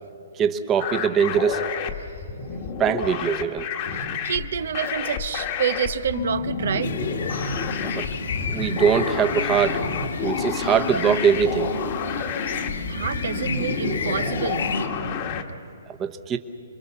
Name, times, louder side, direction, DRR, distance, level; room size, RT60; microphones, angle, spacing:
voice 1, 0.4-1.7 2.8-3.8 7.8-8.1 8.5-9.9 10.2-11.7 15.9-16.4, right 7 dB, 20° right, 8 dB, 1.0 m, -22 dB
sound 1, 0.8-15.4, left 6 dB, 40° left, 1.5 m, -30 dB
voice 2, 3.9-7.0 12.2-12.4 12.9-14.7, right 8 dB, 65° right, 12 dB, 0.8 m, -28 dB
Marimba xylophone / Wood, 6.1-8.3, left 5 dB, 55° left, 1.6 m, -35 dB
sound 2, 6.8-14.9, left 4 dB, 80° left, 2.3 m, -31 dB
28.0 x 21.5 x 7.1 m, 2.6 s
hypercardioid pair, 145°, 0 cm